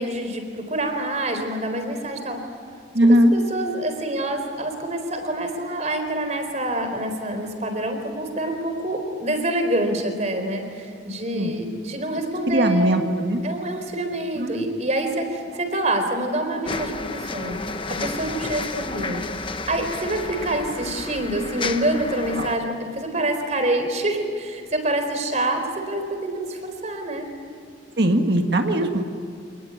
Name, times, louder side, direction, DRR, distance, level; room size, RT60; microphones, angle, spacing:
voice 1, 0.0-2.4 3.0-13.0 13.4-17.6 17.9-27.3, right 1 dB, 35° right, 6 dB, 4.1 m, -26 dB
voice 2, 2.9-3.3 11.3-11.5 12.5-13.4 14.4-14.6 22.4-22.5 28.0-29.1, right 1 dB, 55° right, 4 dB, 1.8 m, -19 dB
sound 1, 16.6-22.5, left 3 dB, 25° left, 0.9 m, -31 dB
28.0 x 20.0 x 9.7 m, 2.3 s
head